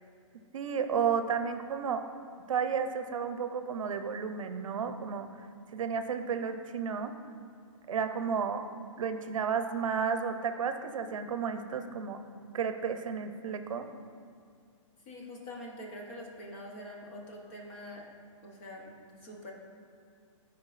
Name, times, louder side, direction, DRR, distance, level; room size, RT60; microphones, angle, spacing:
voice 1, 0.5-2.0 2.5-5.3 5.7-7.1 7.9-8.6 9.0-12.2 12.5-13.9, right 6 dB, 75° right, 8 dB, 0.6 m, -32 dB
voice 2, 15.0-18.1 18.4-19.5, left 1 dB, 25° left, -1 dB, 0.9 m, -45 dB
13.5 x 4.7 x 2.5 m, 2.3 s
hypercardioid pair, 175°, 17 cm